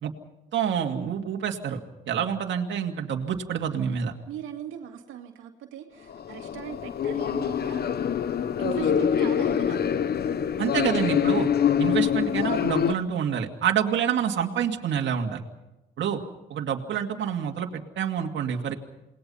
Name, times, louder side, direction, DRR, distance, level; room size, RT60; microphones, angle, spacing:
voice 1, 0.5-1.8 2.1-4.1 10.6-11.5 11.8-15.4 16.0-16.2 16.5-18.7, right 8 dB, 65° right, 2 dB, 2.4 m, -27 dB
voice 2, 4.3-7.8 8.6-9.8, right 10 dB, 85° right, 3 dB, 2.4 m, -39 dB
sound 1, 6.1-12.9, left 8 dB, 55° left, 1.1 m, -25 dB
28.5 x 20.5 x 5.6 m, 0.96 s
cardioid pair, 90°, 20 cm